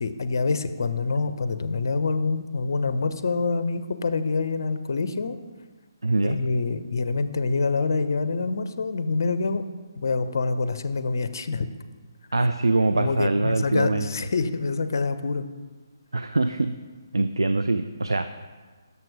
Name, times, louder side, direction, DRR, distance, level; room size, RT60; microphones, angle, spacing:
voice 1, 0.0-5.4 6.2-9.6 10.0-11.7 13.0-15.5, left 4 dB, 55° left, 11 dB, 0.5 m, -26 dB
voice 2, 6.0-6.4 12.3-14.1 16.1-16.7 17.1-18.3, right 2 dB, 80° right, 9 dB, 0.3 m, -23 dB
6.8 x 5.9 x 5.0 m, 1.4 s
figure-of-eight pair, 140°, 2 cm